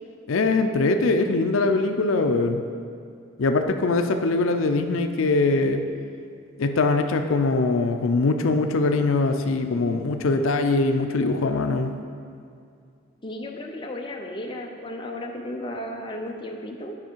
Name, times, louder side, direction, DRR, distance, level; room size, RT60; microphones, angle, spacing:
voice 1, 0.3-2.6 3.4-5.8 6.6-12.0, left 3 dB, 75° left, 6 dB, 0.5 m, -22 dB
voice 2, 13.2-16.9, left 1 dB, 25° left, 1 dB, 0.6 m, -34 dB
9.8 x 5.6 x 4.5 m, 2.4 s
head